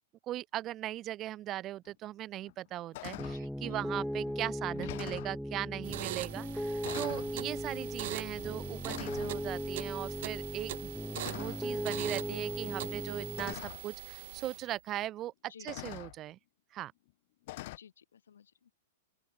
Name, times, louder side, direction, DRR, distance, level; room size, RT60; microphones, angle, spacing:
voice 1, 0.3-3.3 3.6-10.9 11.3-15.3 15.6-16.4 16.7-16.9, right 13 dB, 30° right, 1.7 m, -39 dB
sound 1, 1.9-2.0 2.5-2.7 2.9-3.4 4.3-4.4 4.7-5.4 6.3-6.5 6.8-7.3 8.3-8.5 8.9-9.4 11.1-11.7 12.8-12.9 13.4-13.8 15.0-15.1 15.7-16.2 17.5-17.8, left 19 dB, 55° left, 3.9 m, -44 dB
Piano, 3.2-13.5, equal, ahead, 0.5 m, -38 dB
voice 2, 3.3-3.8 15.4-15.7 17.8-18.8, left 8 dB, 90° left, 7.7 m, -56 dB
sound 2, 5.8-14.8, right 15 dB, 60° right, 0.7 m, -42 dB
open air
hypercardioid pair, 135°, 0 cm